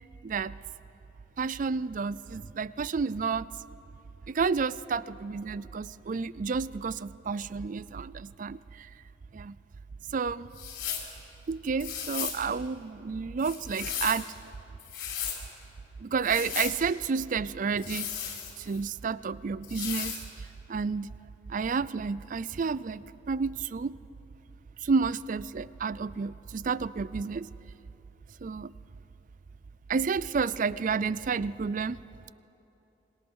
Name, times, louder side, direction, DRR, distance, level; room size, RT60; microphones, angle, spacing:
voice 1, 0.2-0.6 1.4-3.5 4.3-8.9 9.3-9.6 10.1-10.5 11.5-14.3 16.0-18.3 18.6-21.1 21.5-24.0 24.8-27.5 28.4-28.7 29.9-32.0, right 5 dB, 45° right, 18 dB, 0.4 m, -31 dB
sound 1, 10.5-11.1 11.8-12.4 13.4-14.3 14.8-15.4 16.2-16.8 17.8-18.8 19.6-20.2, left 8 dB, 85° left, 4.1 m, -35 dB
26.0 x 21.5 x 6.3 m, 3.0 s
head